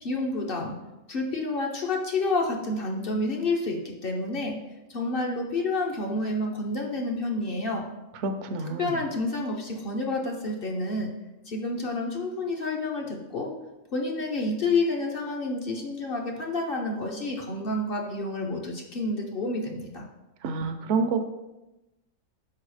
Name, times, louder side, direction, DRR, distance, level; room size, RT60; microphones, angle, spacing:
voice 1, 0.0-0.8 1.1-4.6 4.9-7.9 8.8-11.1 11.5-13.5 13.9-20.1, left 2 dB, 50° left, 0 dB, 0.8 m, -29 dB
voice 2, 8.2-9.0 20.4-21.3, right 4 dB, 65° right, 6 dB, 0.8 m, -28 dB
4.8 x 4.6 x 4.8 m, 1.0 s
omnidirectional pair, 1.4 m